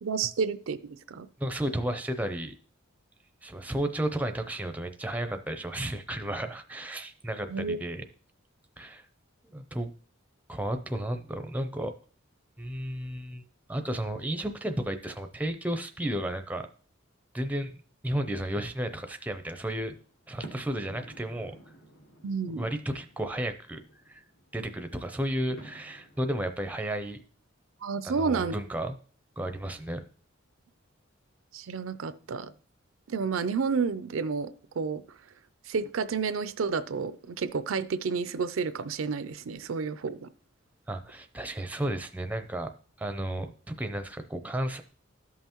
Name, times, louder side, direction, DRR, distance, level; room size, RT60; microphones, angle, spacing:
voice 1, 0.0-1.3 7.5-7.8 22.2-22.7 27.8-28.5 31.5-32.5 33.1-35.0 35.7-40.3, right 5 dB, 75° right, 14 dB, 0.5 m, -30 dB
voice 2, 1.4-2.5 3.4-8.0 8.8-9.0 9.5-9.9 10.5-11.9 12.6-16.7 17.3-19.9 20.3-21.5 22.5-23.8 24.1-24.2 24.5-27.2 28.0-29.0 29.4-30.0 40.9-42.7 43.0-44.8, right 1 dB, 10° right, 8 dB, 0.5 m, -33 dB
sound 1, 19.1-26.3, right 1 dB, 65° left, 1.6 m, -52 dB
13.0 x 5.5 x 3.0 m, 0.43 s
head